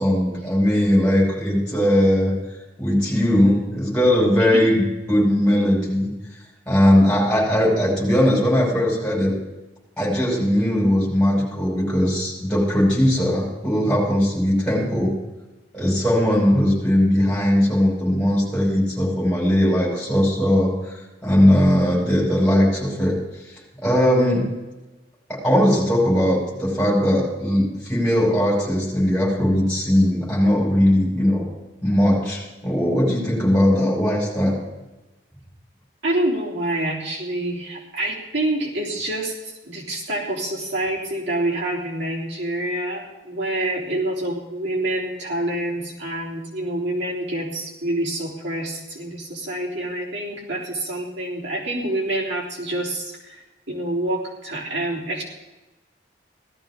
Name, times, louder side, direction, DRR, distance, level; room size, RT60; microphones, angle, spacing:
voice 1, 0.0-2.3 2.8-6.1 6.7-9.3 10.0-15.1 15.7-20.7 21.2-23.2 23.8-24.4 25.3-31.5 31.8-34.5, equal, 5° left, -5 dB, 5.8 m, -19 dB
voice 2, 4.4-4.7 36.0-55.2, right 1 dB, 85° right, -4 dB, 3.8 m, -27 dB
17.0 x 13.0 x 3.8 m, 1.1 s
head